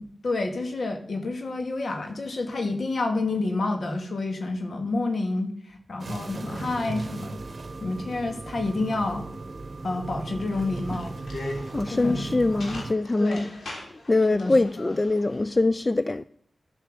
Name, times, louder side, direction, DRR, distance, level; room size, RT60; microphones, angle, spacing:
voice 1, 0.0-7.4 7.8-9.3 9.8-11.2 11.9-12.3 13.2-13.5 14.3-14.5, left 2 dB, 65° left, 2.3 m, -29 dB
sound 1, 6.0-12.9, right 3 dB, 50° right, 1.0 m, -36 dB
sound 2, 10.5-15.5, left 2 dB, 80° left, 3.5 m, -41 dB
voice 2, 11.7-13.5 13.9-16.2, left 2 dB, 30° left, 0.4 m, -23 dB
12.0 x 7.3 x 6.8 m
cardioid pair, 60°, 0 cm